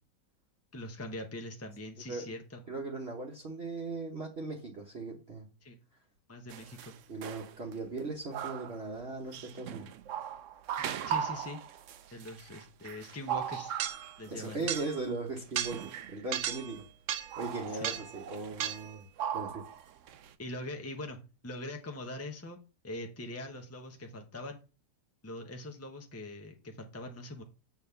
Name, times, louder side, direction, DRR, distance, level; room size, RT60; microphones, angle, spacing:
voice 1, 0.7-2.6 5.6-5.8 6.3-6.9 10.8-11.6 12.1-13.7 14.2-14.7 17.7-17.9 20.4-22.6 22.8-24.6 25.2-27.4, left 1 dB, 20° left, 4 dB, 0.4 m, -42 dB
voice 2, 2.7-5.5 7.1-9.9 14.3-16.8 17.1-19.1 19.3-19.6, right 3 dB, 40° right, 0 dB, 1.2 m, -38 dB
sound 1, 6.5-6.9 7.2-7.7 8.3-8.9 9.3-15.1 15.4-16.8 17.1-19.8 20.1-20.3, right 9 dB, 65° right, 0.8 m, -37 dB
7.2 x 4.2 x 6.8 m, 0.31 s
omnidirectional pair, 1.9 m